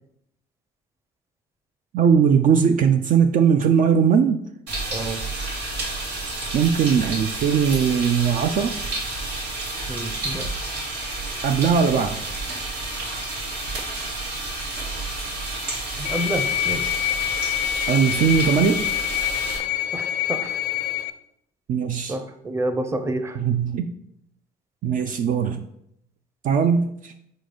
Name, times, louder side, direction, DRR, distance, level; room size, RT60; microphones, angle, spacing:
voice 1, 1.9-4.4 6.5-8.7 11.4-12.2 17.9-18.9 21.7-22.2 23.4-23.9 24.8-25.6 26.4-27.1, right 7 dB, 55° right, 7 dB, 0.4 m, -19 dB
sound 1, 4.7-19.6, right 2 dB, 85° right, 2.3 m, -30 dB
voice 2, 4.9-5.2 9.9-10.5 16.0-16.9 19.9-20.6 22.1-23.4, right 1 dB, 15° right, 8 dB, 0.7 m, -29 dB
sound 2, 16.0-21.1, left 13 dB, 70° left, 0.5 m, -26 dB
5.2 x 3.9 x 5.0 m, 0.75 s
cardioid pair, 110°, 17 cm